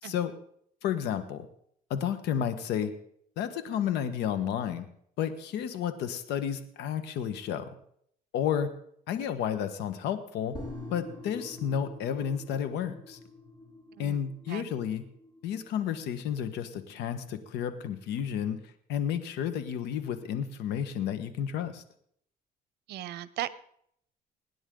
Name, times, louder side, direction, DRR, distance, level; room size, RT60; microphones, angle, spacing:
voice 1, 0.0-0.3 0.8-1.5 1.9-2.9 3.4-4.9 5.2-7.7 8.3-8.7 9.1-10.6 10.9-13.2 14.0-15.0 15.4-18.6 18.9-21.8, left 9 dB, 80° left, 10 dB, 1.5 m, -31 dB
sound 1, 10.5-17.7 18.0-18.1, left 2 dB, 25° left, 4.1 m, -46 dB
voice 2, 22.9-23.5, right 13 dB, 75° right, 16 dB, 0.8 m, -36 dB
24.0 x 10.0 x 3.9 m, 0.68 s
cardioid pair, 110°, 17 cm